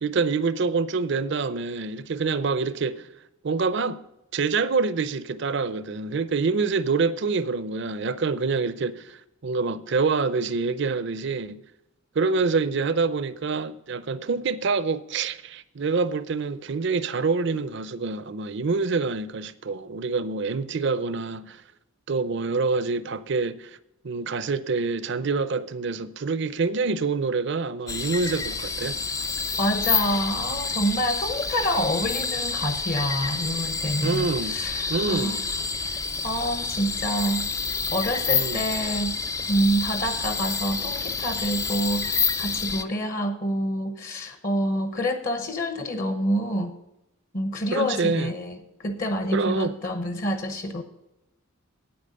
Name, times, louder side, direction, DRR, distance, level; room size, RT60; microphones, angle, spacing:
voice 1, 0.0-3.1 3.4-4.0 4.3-11.6 12.1-21.6 22.1-23.7 24.0-29.0 34.0-34.5 34.9-35.4 38.3-38.7 47.7-48.3 49.3-49.7, right 4 dB, 55° right, 0.6 m, -26 dB
sound 1, 27.9-42.8, left 4 dB, 15° left, 0.3 m, -28 dB
voice 2, 29.6-35.4 35.9-37.4 37.7-39.1 39.5-46.7 47.3-50.8, equal, 40° left, 0.8 m, -27 dB
9.0 x 8.6 x 5.5 m
head